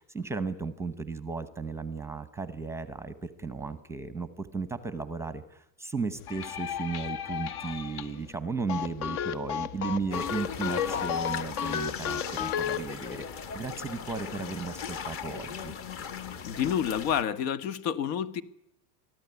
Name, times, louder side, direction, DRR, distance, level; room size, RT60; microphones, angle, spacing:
voice 1, 0.0-15.8, right 4 dB, 5° right, 12 dB, 0.8 m, -35 dB
sound 1, 6.2-8.3 8.7-12.8, left 8 dB, 60° left, 1.7 m, -33 dB
sound 2, 10.1-17.2, left 6 dB, 25° left, 1.1 m, -39 dB
voice 2, 16.4-18.4, left 9 dB, 90° left, 13 dB, 2.1 m, -29 dB
23.0 x 14.0 x 9.7 m, 0.82 s
supercardioid pair, 170°, 48 cm